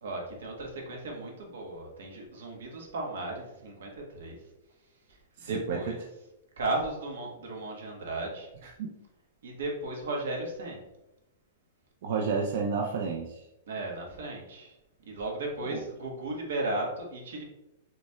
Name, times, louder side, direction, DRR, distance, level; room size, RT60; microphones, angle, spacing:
voice 1, 0.0-4.4 5.1-6.0 6.6-8.5 9.4-10.8 13.7-14.7 15.0-17.4, right 2 dB, 90° right, 0 dB, 1.3 m, -35 dB
voice 2, 5.4-5.8 8.8-8.9 12.0-13.4 15.6-15.8, right 5 dB, 50° right, 0 dB, 0.5 m, -30 dB
5.8 x 3.2 x 2.3 m, 0.94 s
supercardioid pair, 170°, 0 cm